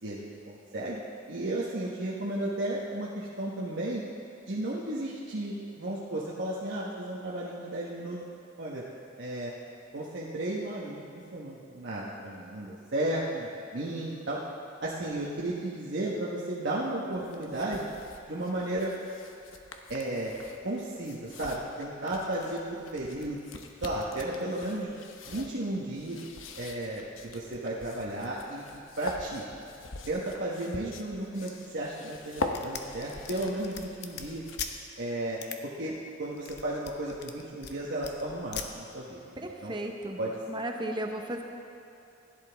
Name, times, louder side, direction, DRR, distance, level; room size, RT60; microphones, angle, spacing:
voice 1, 0.0-1.0 1.3-4.0 4.5-8.2 8.6-8.8 9.2-9.5 9.9-11.0 11.3-14.4 14.8-17.9 18.3-18.9 19.9-20.3 20.6-23.4 23.8-25.0 25.3-26.2 26.5-28.6 29.0-29.4 30.1-34.4 35.0-35.9 36.2-39.7 40.2-40.3, right 1 dB, 60° right, -6 dB, 1.2 m, -34 dB
sound 1, 17.1-34.9, left 2 dB, 85° left, 0.9 m, -43 dB
sound 2, 32.5-34.7 35.4-35.6 36.2-37.8 38.0-38.7, left 7 dB, 60° left, 0.8 m, -40 dB
voice 2, 39.4-40.2 40.5-41.4, right 1 dB, 25° right, 3 dB, 0.9 m, -35 dB
16.0 x 10.5 x 3.4 m, 2.7 s
head